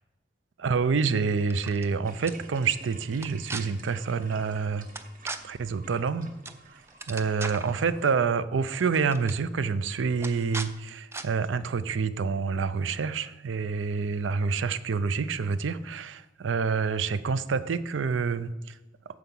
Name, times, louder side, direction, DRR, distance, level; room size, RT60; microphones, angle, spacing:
voice 1, 0.6-4.9 5.4-6.3 6.7-6.8 7.1-18.8, right 5 dB, 80° right, 14 dB, 0.5 m, -27 dB
sound 1, 1.4-1.9 2.3-2.4 3.1-3.6 4.9-5.4 6.4-6.6 6.9-7.7 8.7-8.8 9.1-9.4 10.2-10.7 11.1-11.3, right 3 dB, 15° right, 0.4 m, -37 dB
sound 2, 2.0-8.2, right 3 dB, 45° right, 1.0 m, -52 dB
9.7 x 4.7 x 7.0 m, 1.0 s
head